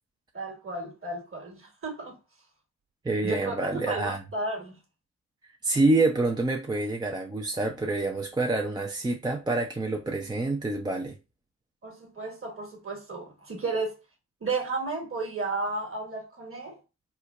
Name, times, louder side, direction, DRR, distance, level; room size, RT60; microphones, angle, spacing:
voice 1, 0.3-2.2 3.2-4.8 11.8-14.0 14.4-16.8, right 3 dB, 40° right, 1.4 m, -33 dB
voice 2, 3.0-4.2 5.6-11.2, right 2 dB, 10° right, 0.5 m, -27 dB
4.4 x 2.2 x 2.3 m
supercardioid pair, 45°, 35 cm